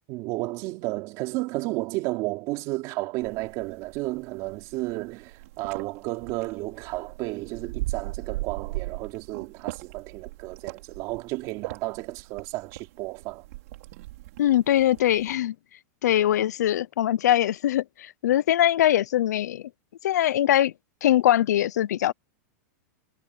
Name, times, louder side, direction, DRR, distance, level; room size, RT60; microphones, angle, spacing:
voice 1, 0.1-13.4, right 21 dB, 40° right, 3.1 m, -32 dB
sound 1, 3.2-15.3, right 19 dB, 60° right, 4.4 m, -39 dB
voice 2, 14.4-15.5 16.0-19.6 20.0-20.7 21.0-22.1, left 12 dB, 85° left, 0.6 m, -22 dB
supercardioid pair, 155°, 9 cm